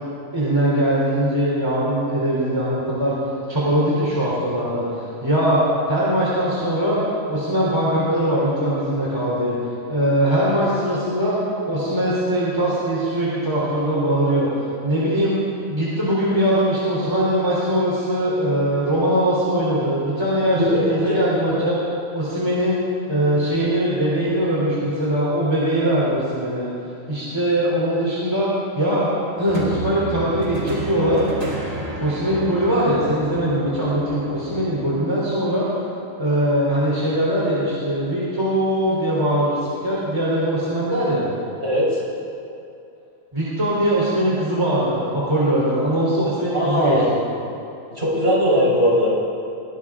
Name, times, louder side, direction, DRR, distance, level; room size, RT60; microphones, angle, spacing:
voice 1, 0.3-3.2 3.5-9.6 9.9-11.4 11.7-14.5 14.8-15.4 15.7-21.8 22.1-22.8 23.1-26.7 27.1-28.5 28.8-31.2 32.0-35.7 36.2-41.3 43.3-47.2, right 1 dB, 20° right, -8 dB, 3.5 m, -21 dB
sound 1, 29.5-34.7, right 2 dB, 65° right, 3.2 m, -32 dB
voice 2, 41.6-42.0 46.5-47.1 47.9-49.1, equal, 35° right, -6 dB, 5.1 m, -19 dB
21.0 x 17.5 x 3.7 m, 2.7 s
omnidirectional pair, 1.4 m